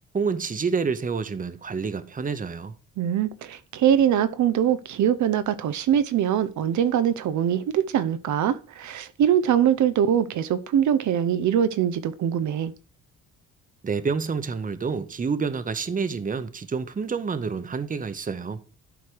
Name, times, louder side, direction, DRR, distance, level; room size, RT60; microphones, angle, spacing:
voice 1, 0.1-2.7 13.8-18.6, right 5 dB, 25° right, 1.0 m, -28 dB
voice 2, 3.0-12.7, right 9 dB, 70° right, 0.9 m, -23 dB
12.0 x 4.7 x 4.7 m
cardioid pair, 90°, 30 cm